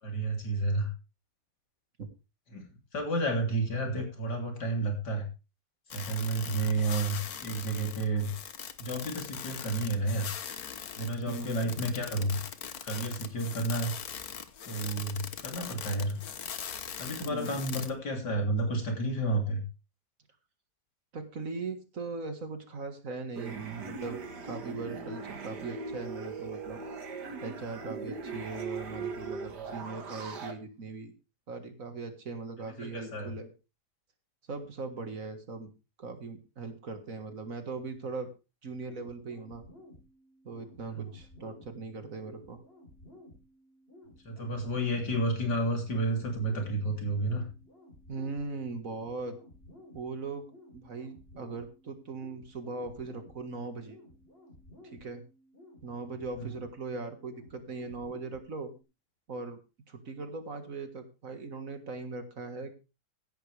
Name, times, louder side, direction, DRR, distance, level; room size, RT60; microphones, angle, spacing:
voice 1, 0.0-0.9 2.5-2.6 2.9-5.3 5.9-8.3 8.8-10.3 11.0-12.4 12.8-13.9 14.6-16.2 17.0-19.6 32.8-33.3 40.9-41.1 44.2-47.4 56.4-56.5, right 2 dB, 90° left, 3 dB, 3.8 m, -31 dB
sound 1, 5.9-17.9, left 8 dB, 65° left, 1.6 m, -41 dB
voice 2, 11.3-11.9 17.2-17.6 21.1-26.8 27.4-31.1 31.5-33.5 34.5-35.7 36.0-38.3 38.6-39.6 40.4-42.6 48.1-49.4 49.9-50.5 50.7-54.0 54.9-55.2 55.8-58.7 59.3-59.6 59.9-62.7, right 3 dB, 55° right, 8 dB, 2.1 m, -39 dB
sound 2, 23.4-30.5, right 4 dB, 85° right, 2.3 m, -39 dB
sound 3, 38.8-58.8, left 1 dB, 35° left, 4.5 m, -55 dB
15.5 x 11.0 x 3.4 m, 0.30 s
omnidirectional pair, 1.7 m